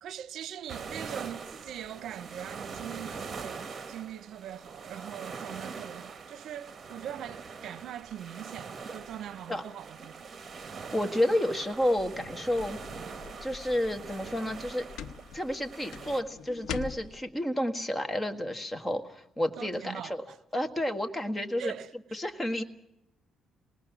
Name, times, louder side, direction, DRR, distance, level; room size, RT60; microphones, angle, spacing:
voice 1, 0.0-10.2 19.6-20.4 21.6-22.2, right 10 dB, 75° right, 0.7 m, -42 dB
sound 1, 0.7-16.2, right 5 dB, 40° right, 1.9 m, -43 dB
voice 2, 10.9-12.8 13.4-14.8 15.3-20.2 20.5-21.7 22.1-22.6, left 1 dB, 15° left, 1.7 m, -30 dB
sound 2, 11.7-17.2, left 7 dB, 90° left, 1.0 m, -44 dB
27.5 x 20.0 x 6.1 m
cardioid pair, 90°, 0 cm